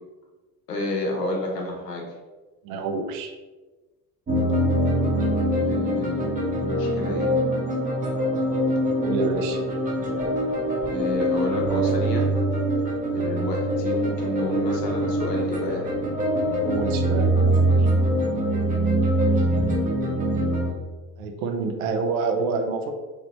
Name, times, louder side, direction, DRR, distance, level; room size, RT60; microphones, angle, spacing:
voice 1, 0.7-2.1 5.5-6.2 6.6-7.3 10.9-12.3 13.1-15.9, left 2 dB, 80° left, 0 dB, 0.8 m, -30 dB
voice 2, 2.6-3.3 9.0-9.6 16.6-17.4 17.8-17.9 21.2-22.9, right 4 dB, 60° right, 5 dB, 0.6 m, -27 dB
sound 1, 4.3-20.7, right 1 dB, 15° right, 0.7 m, -23 dB
3.1 x 2.8 x 2.9 m, 1.2 s
figure-of-eight pair, 60°, 48 cm